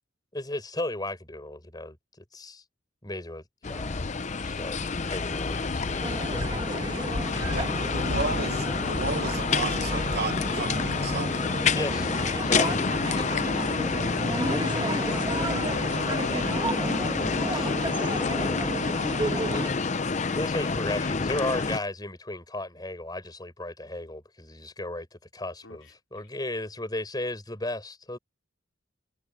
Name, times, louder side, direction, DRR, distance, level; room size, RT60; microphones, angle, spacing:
voice 1, 0.3-2.6 3.0-4.0 4.4-6.1 7.5-7.6 11.7-12.1 12.4-12.9 14.4-14.6 17.2-17.7 20.3-28.2, left 1 dB, 20° left, 5.3 m, -35 dB
sound 1, 3.6-21.8, left 4 dB, 35° left, 0.6 m, -28 dB
sound 2, 6.0-19.7, right 2 dB, 25° right, 1.3 m, -33 dB
voice 2, 7.5-11.4, right 4 dB, 55° right, 0.9 m, -33 dB
voice 3, 15.5-16.8 25.6-25.9, left 3 dB, 80° left, 3.6 m, -44 dB
head